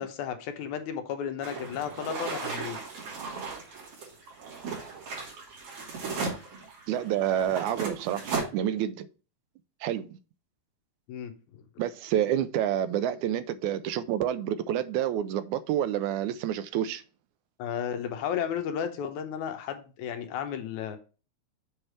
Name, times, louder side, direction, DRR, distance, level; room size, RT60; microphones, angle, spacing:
voice 1, 0.0-2.8 6.0-6.1 11.1-11.7 17.6-21.0, left 8 dB, 85° left, 2.2 m, -33 dB
sound 1, 1.4-8.4, right 4 dB, 70° right, 3.7 m, -36 dB
voice 2, 6.9-9.1 9.8-10.2 11.8-17.0, right 10 dB, 85° right, 2.0 m, -28 dB
7.2 x 3.3 x 5.9 m
omnidirectional pair, 3.4 m